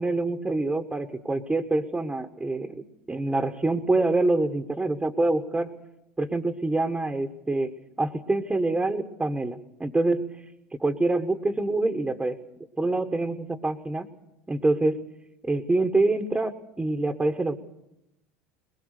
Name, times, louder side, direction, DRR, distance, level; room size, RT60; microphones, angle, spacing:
voice 1, 0.0-5.7 6.2-7.7 8.0-10.3 10.8-12.4 12.8-14.1 14.5-15.0 15.4-17.6, right 2 dB, 10° right, 5 dB, 1.3 m, -26 dB
21.5 x 20.5 x 6.7 m, 0.86 s
hypercardioid pair, 80°, 7 cm